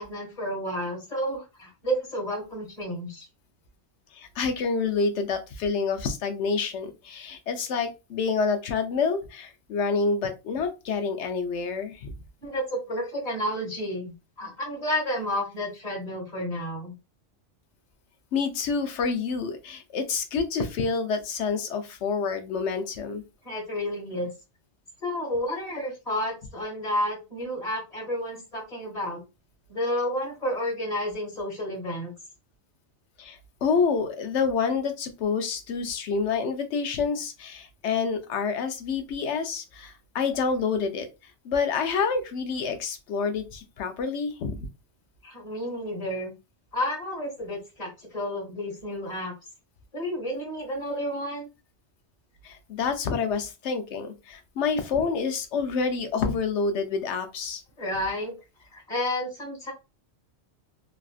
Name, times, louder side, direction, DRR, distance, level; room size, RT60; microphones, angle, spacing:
voice 1, 0.0-3.2 12.4-16.9 23.4-24.3 25.0-29.2 29.7-32.1 45.2-46.3 46.7-49.3 49.9-51.5 57.8-58.4 58.7-59.7, equal, 35° left, 0 dB, 1.5 m, -31 dB
voice 2, 4.1-12.1 18.3-23.2 33.2-41.1 41.4-44.7 52.4-57.6, left 5 dB, 75° left, 7 dB, 0.9 m, -28 dB
3.3 x 2.5 x 2.4 m, 0.27 s
omnidirectional pair, 1.2 m